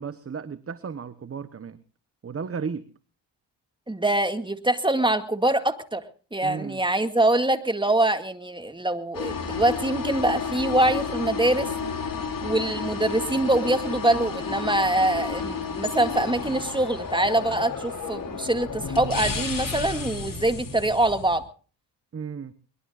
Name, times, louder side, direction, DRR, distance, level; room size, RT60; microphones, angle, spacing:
voice 1, 0.0-1.8 2.2-2.9 6.4-6.9 22.1-22.5, right 6 dB, 35° right, 13 dB, 1.1 m, -34 dB
voice 2, 3.9-6.0 6.3-11.7 12.4-21.4, right 1 dB, 10° right, 8 dB, 2.1 m, -24 dB
sound 1, 9.1-21.4, left 5 dB, 50° left, 4.7 m, -32 dB
22.5 x 21.5 x 2.5 m, 0.39 s
cardioid pair, 80°, 42 cm